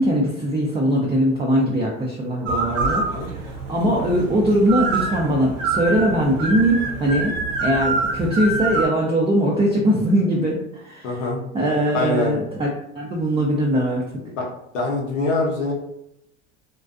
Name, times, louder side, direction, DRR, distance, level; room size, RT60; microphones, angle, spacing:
voice 1, 0.0-7.3 7.6-11.1 11.5-12.7 13.0-14.0, equal, 15° right, -3 dB, 0.4 m, -21 dB
sound 1, 2.5-8.9, right 3 dB, 75° right, 0.8 m, -26 dB
voice 2, 11.0-11.4 11.9-12.4 14.7-15.7, left 2 dB, 90° left, -2 dB, 0.8 m, -23 dB
2.4 x 2.2 x 2.4 m, 0.80 s
hypercardioid pair, 85°, 36 cm